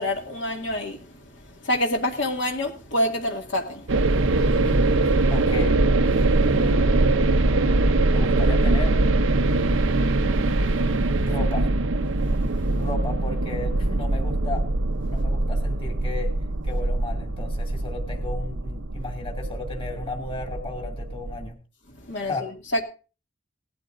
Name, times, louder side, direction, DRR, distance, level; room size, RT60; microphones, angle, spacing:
voice 1, 0.0-5.3 6.4-6.7 9.5-11.3 12.2-12.8 15.1-15.2 22.0-22.8, left 1 dB, 65° left, 1 dB, 2.2 m, -30 dB
sound 1, 3.9-21.5, right 2 dB, 80° right, 0.8 m, -22 dB
voice 2, 5.3-5.8 6.6-9.0 11.3-11.7 12.8-14.7 15.1-16.3 16.6-21.6 22.2-22.5, left 2 dB, 25° left, 2 dB, 2.4 m, -35 dB
18.5 x 12.5 x 2.6 m, 0.33 s
head